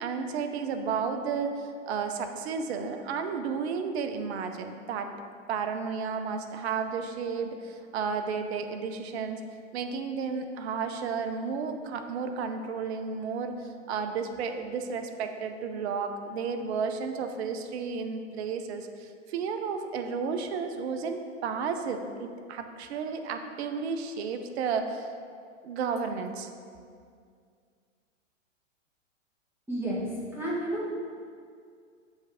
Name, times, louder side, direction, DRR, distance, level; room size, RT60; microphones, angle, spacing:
voice 1, 0.0-5.1 5.5-9.4 9.7-25.1 25.6-26.5, right 5 dB, 55° right, 7 dB, 0.7 m, -32 dB
voice 2, 29.7-30.9, right 1 dB, 5° right, -8 dB, 1.5 m, -31 dB
7.4 x 3.2 x 5.0 m, 2.2 s
hypercardioid pair, 125°, 39 cm